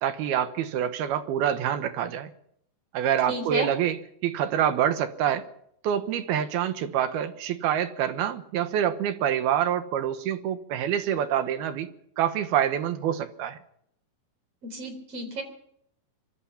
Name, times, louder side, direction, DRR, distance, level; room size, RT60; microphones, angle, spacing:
voice 1, 0.0-2.3 2.9-4.0 4.2-5.5 5.8-11.9 12.2-13.6, right 10 dB, 70° right, 2.8 m, -26 dB
voice 2, 3.3-3.7 14.6-15.4, right 2 dB, 35° right, 4.6 m, -31 dB
24.5 x 24.0 x 5.8 m
omnidirectional pair, 5.1 m